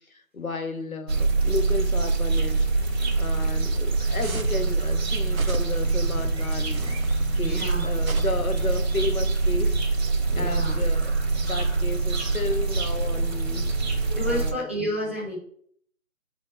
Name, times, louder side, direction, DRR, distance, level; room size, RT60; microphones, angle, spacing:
voice 1, 0.1-2.9 3.2-7.0 7.3-9.8 10.3-11.1 11.4-14.7, left 3 dB, 85° left, 6 dB, 1.3 m, -33 dB
sound 1, 1.1-14.5, right 3 dB, 50° right, 1.9 m, -24 dB
sound 2, 4.2-4.7 5.3-6.0 6.7-7.3 8.0-8.8, right 4 dB, 85° right, 0.8 m, -38 dB
voice 2, 7.4-7.9 8.2-8.3 10.3-10.8 14.1-15.4, equal, 10° right, -6 dB, 0.8 m, -30 dB
9.2 x 4.3 x 4.1 m, 0.64 s
figure-of-eight pair, 155°, 41 cm